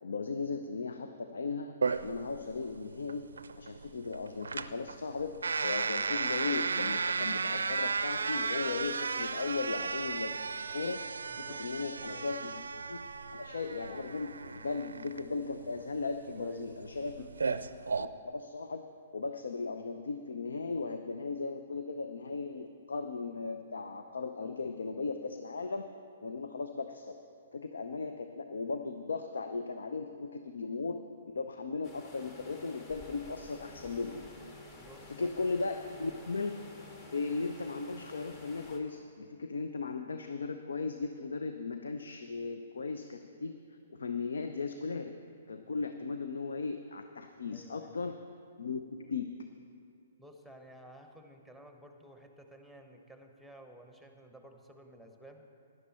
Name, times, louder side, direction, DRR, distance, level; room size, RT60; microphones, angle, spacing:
voice 1, 0.0-1.8 2.0-3.2 3.6-5.3 5.6-10.4 10.7-11.0 11.4-12.6 12.9-13.0 13.3-17.2 18.0-18.8 19.1-25.9 26.2-27.2 27.5-31.0 31.3-34.2 35.1-36.6 37.1-43.5 43.9-45.1 45.5-48.2 48.6-49.3, left 4 dB, 65° left, 7 dB, 0.6 m, -37 dB
sound 1, 1.8-18.0, right 4 dB, 70° right, 0.4 m, -35 dB
voice 2, 11.3-11.6 12.0-12.3 16.4-16.6 17.2-17.3 34.8-35.3 36.0-36.2 47.5-47.9 50.2-55.4, right 1 dB, 5° left, 4 dB, 1.1 m, -54 dB
sound 2, 31.8-38.8, left 2 dB, 30° left, 1.8 m, -51 dB
17.0 x 11.0 x 4.3 m, 2.3 s
figure-of-eight pair, 120°, 0 cm